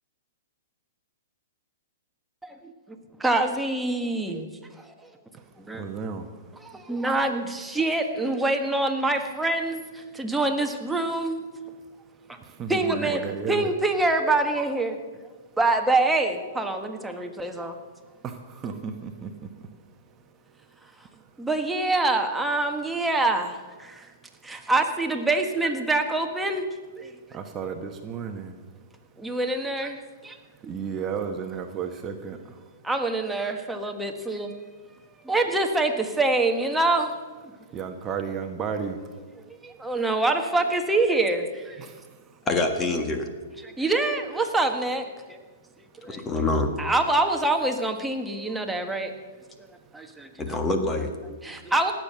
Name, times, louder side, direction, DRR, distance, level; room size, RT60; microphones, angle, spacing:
voice 1, 3.2-4.5 5.7-5.8 6.6-11.4 12.7-13.2 13.5-15.0 15.6-17.8 21.4-24.1 24.4-26.6 27.0-27.1 29.2-30.4 30.6-30.8 32.8-34.5 35.2-37.1 37.4-37.5 39.6-41.8 43.6-45.4 46.0-46.3 46.8-49.1 49.9-50.6 51.2-51.9, right 2 dB, 5° right, 4 dB, 1.5 m, -25 dB
voice 2, 5.7-6.3 12.4-13.7 18.2-19.7 27.3-28.6 30.6-32.6 37.7-39.0 41.8-42.4, right 6 dB, 25° right, 5 dB, 1.1 m, -33 dB
voice 3, 42.5-43.3 46.1-46.7 50.4-51.1, left 2 dB, 20° left, 6 dB, 1.5 m, -25 dB
18.0 x 7.6 x 6.8 m, 1.4 s
hypercardioid pair, 125°, 0 cm